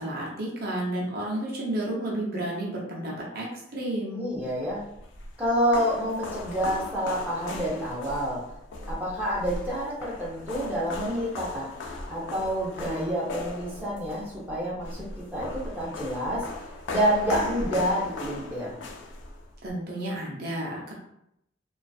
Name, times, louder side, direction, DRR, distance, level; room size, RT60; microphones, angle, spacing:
voice 1, 0.0-3.5 3.7-4.3 19.6-20.9, right 1 dB, 50° right, -4 dB, 0.6 m, -31 dB
voice 2, 4.2-4.8 5.4-8.4 8.9-16.5 16.9-18.8, equal, 10° right, -7 dB, 0.6 m, -28 dB
sound 1, 4.7-19.7, left 2 dB, 70° left, 0.3 m, -38 dB
2.4 x 2.3 x 2.3 m, 0.79 s
head